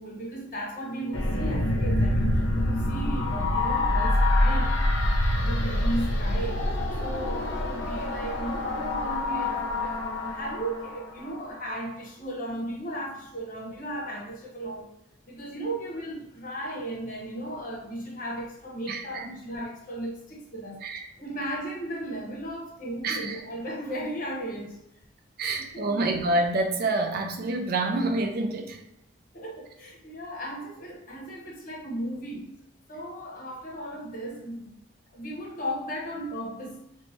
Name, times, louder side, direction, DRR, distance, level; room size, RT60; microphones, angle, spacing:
voice 1, 0.0-15.0 15.3-20.8 21.2-24.8 25.4-26.1 29.3-32.6 32.9-34.8 35.1-36.9, right 1 dB, 50° left, -2 dB, 0.8 m, -36 dB
sound 1, 1.1-11.5, left 1 dB, 80° left, 0.6 m, -26 dB
voice 2, 18.9-19.2 20.8-21.0 23.0-23.4 25.4-28.8, right 2 dB, 55° right, 3 dB, 0.4 m, -27 dB
2.6 x 2.3 x 3.0 m, 0.82 s
head